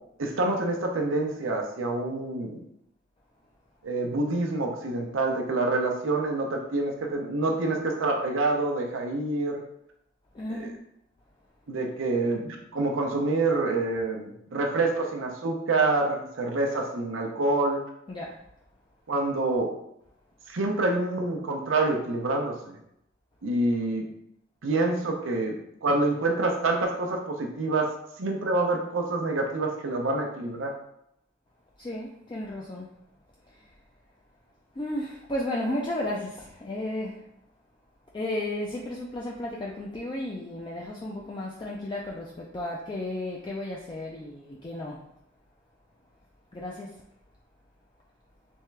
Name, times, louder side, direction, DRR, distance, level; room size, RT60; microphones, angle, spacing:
voice 1, 0.2-2.6 3.8-9.6 10.5-10.7 11.7-17.8 19.1-19.7 20.5-22.8 23.4-24.0 24.6-25.5 25.8-27.9 28.2-30.7, right 2 dB, 85° right, 2 dB, 0.6 m, -27 dB
voice 2, 10.3-10.7 18.1-18.4 31.8-32.9 33.6-33.7 34.8-37.2 38.1-45.0 46.5-47.0, left 1 dB, 25° left, -3 dB, 0.4 m, -33 dB
3.5 x 3.3 x 3.2 m, 0.76 s
head